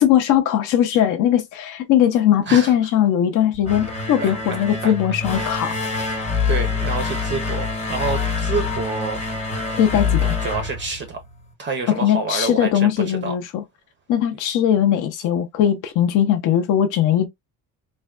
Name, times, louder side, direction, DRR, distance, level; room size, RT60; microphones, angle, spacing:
voice 1, 0.0-5.8 9.8-10.4 11.9-13.6 14.1-17.3, left 10 dB, 55° left, 0.5 m, -19 dB
sound 1, 3.5-11.5, left 4 dB, 20° left, 0.9 m, -25 dB
voice 2, 5.3-5.8 6.5-9.2 10.4-11.2 11.6-13.4 14.3-14.4, right 4 dB, 30° right, 0.5 m, -28 dB
3.3 x 2.1 x 2.3 m
cardioid pair, 155°, 37 cm